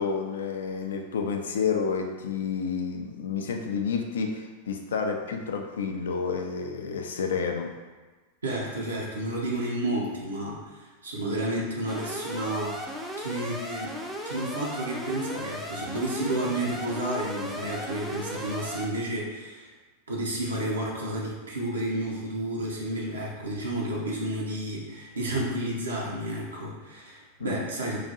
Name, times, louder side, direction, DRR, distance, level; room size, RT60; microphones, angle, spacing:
voice 1, 0.0-7.7 27.4-27.6, left 5 dB, 65° left, 4 dB, 0.4 m, -30 dB
voice 2, 8.4-12.8 13.2-13.9 14.2-19.7 20.1-28.1, right 1 dB, 75° right, -4 dB, 0.7 m, -31 dB
Alarm, 11.9-18.9, equal, ahead, 0.5 m, -36 dB
4.8 x 2.5 x 2.8 m, 1.3 s
figure-of-eight pair, 90°, 0 cm